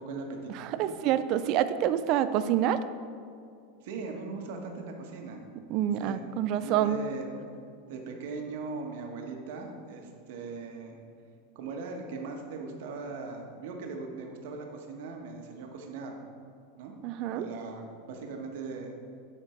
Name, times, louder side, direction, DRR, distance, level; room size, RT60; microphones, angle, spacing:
voice 1, 0.0-0.9 3.8-5.5 6.0-6.2 6.5-7.5 7.9-11.0 11.5-16.2 16.8-16.9 17.3-18.9, right 3 dB, 70° right, 2 dB, 1.3 m, -39 dB
voice 2, 0.5-2.8 5.7-7.0 17.0-17.5, right 11 dB, 45° right, 12 dB, 0.4 m, -27 dB
13.0 x 4.4 x 4.4 m, 2.4 s
supercardioid pair, 145°, 0 cm